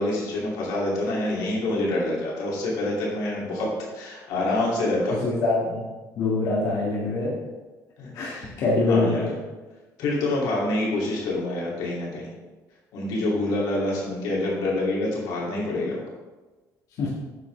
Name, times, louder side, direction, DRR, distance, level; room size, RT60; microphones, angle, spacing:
voice 1, 0.0-5.2 8.0-8.5 8.9-9.2 10.0-12.3 12.9-16.0, left 2 dB, 85° left, -4 dB, 2.7 m, -26 dB
voice 2, 5.2-5.8 6.2-7.3 8.1-9.4 17.0-17.1, left 2 dB, 60° left, -6 dB, 2.1 m, -24 dB
9.2 x 7.1 x 3.4 m, 1.2 s
cardioid pair, 155°, 7 cm